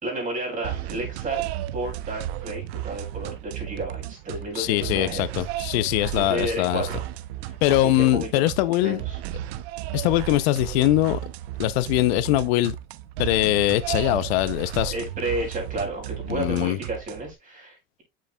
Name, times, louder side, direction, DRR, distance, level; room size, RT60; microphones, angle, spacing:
voice 1, 0.0-5.2 6.2-7.0 7.4-8.4 8.8-9.2 14.9-18.0, right 1 dB, 25° right, 4.3 m, -32 dB
sound 1, 0.6-17.3, right 13 dB, 85° right, 0.7 m, -34 dB
voice 2, 4.6-6.9 7.6-9.0 9.9-11.2 11.6-12.8 13.2-14.9 16.3-16.8, left 16 dB, 80° left, 0.7 m, -22 dB
8.2 x 6.4 x 2.2 m
supercardioid pair, 120°, 31 cm